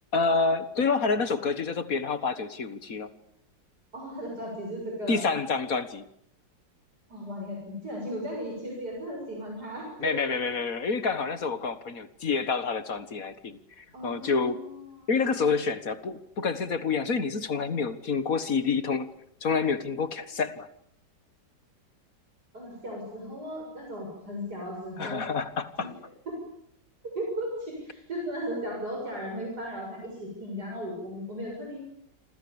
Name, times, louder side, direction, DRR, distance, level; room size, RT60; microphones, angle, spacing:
voice 1, 0.1-3.1 5.1-6.1 10.0-14.6 15.1-19.1 19.4-20.7 25.0-25.9, left 4 dB, 50° left, 12 dB, 1.9 m, -28 dB
voice 2, 3.9-5.2 7.1-10.2 13.9-15.5 22.5-25.3 25.8-25.9 27.0-31.8, equal, 60° right, 0 dB, 7.6 m, -36 dB
28.5 x 26.5 x 7.2 m, 0.70 s
omnidirectional pair, 1.9 m